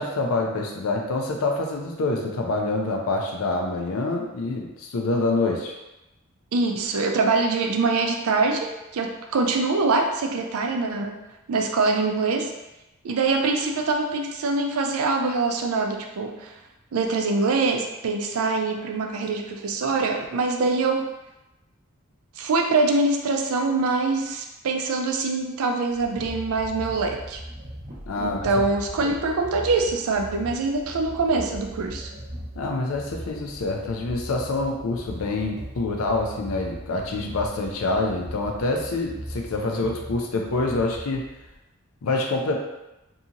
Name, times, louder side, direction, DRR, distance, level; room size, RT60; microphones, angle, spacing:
voice 1, 0.0-5.7 28.1-28.5 29.0-29.1 32.6-41.3 42.0-42.5, left 2 dB, 80° left, 2 dB, 0.5 m, -26 dB
voice 2, 6.5-11.2 11.5-12.5 13.0-16.5 16.9-21.1 22.4-27.4 28.2-32.1, right 3 dB, 80° right, 4 dB, 0.4 m, -24 dB
sound 1, 25.9-41.6, equal, 30° right, 0.7 m, -39 dB
2.8 x 2.7 x 2.5 m, 0.96 s
head